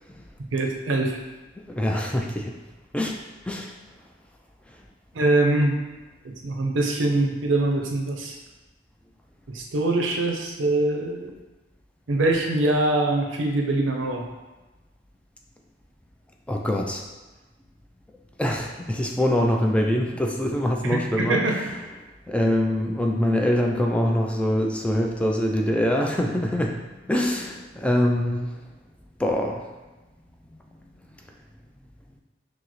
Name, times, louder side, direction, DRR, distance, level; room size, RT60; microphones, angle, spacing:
voice 1, 0.5-1.2 5.1-5.7 6.4-8.4 9.5-11.3 12.1-14.2 20.8-21.7, right 2 dB, 80° right, 1 dB, 0.6 m, -23 dB
voice 2, 1.6-2.5 2.9-3.2 3.5-3.7 16.5-17.0 18.4-21.5 22.3-28.5 29.2-29.6, left 1 dB, 5° left, 1 dB, 0.3 m, -24 dB
6.1 x 2.0 x 3.1 m, 1.1 s
head